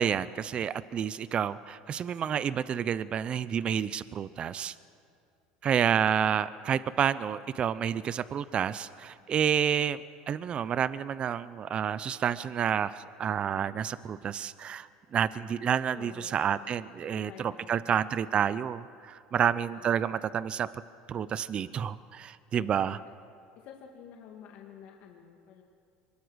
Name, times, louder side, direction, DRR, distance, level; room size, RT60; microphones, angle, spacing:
voice 1, 0.0-4.7 5.6-20.7 21.1-23.0, right 8 dB, 35° right, 17 dB, 0.6 m, -29 dB
voice 2, 15.9-16.7 17.0-17.9 19.4-19.9 22.5-23.0 23.6-25.6, left 8 dB, 60° left, 1 dB, 2.1 m, -50 dB
23.5 x 20.0 x 6.4 m, 2.4 s
supercardioid pair, 110°, 3 cm